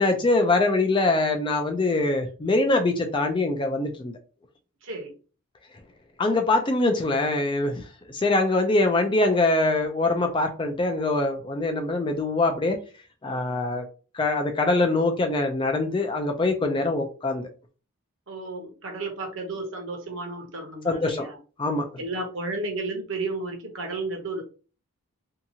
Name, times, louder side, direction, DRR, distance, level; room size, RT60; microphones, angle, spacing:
voice 1, 0.0-4.1 6.2-7.8 8.1-12.8 13.2-13.8 14.1-17.4 20.8-21.3 21.6-21.9, left 2 dB, 20° left, 4 dB, 0.3 m, -23 dB
voice 2, 4.8-5.1 18.3-21.4 22.0-24.4, right 2 dB, 60° right, 2 dB, 0.8 m, -32 dB
2.8 x 2.3 x 2.7 m, 0.36 s
head